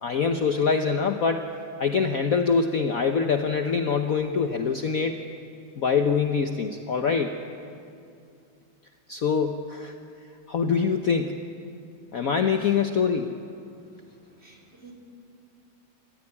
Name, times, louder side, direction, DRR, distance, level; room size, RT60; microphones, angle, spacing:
voice 1, 0.0-1.4 1.8-5.2 5.8-7.3 9.1-9.9 10.5-11.4 12.1-13.4, left 5 dB, 55° left, 5 dB, 1.1 m, -24 dB
voice 2, 13.8-14.9, right 3 dB, 30° right, -1 dB, 3.9 m, -54 dB
28.0 x 14.5 x 9.8 m, 2.4 s
omnidirectional pair, 2.2 m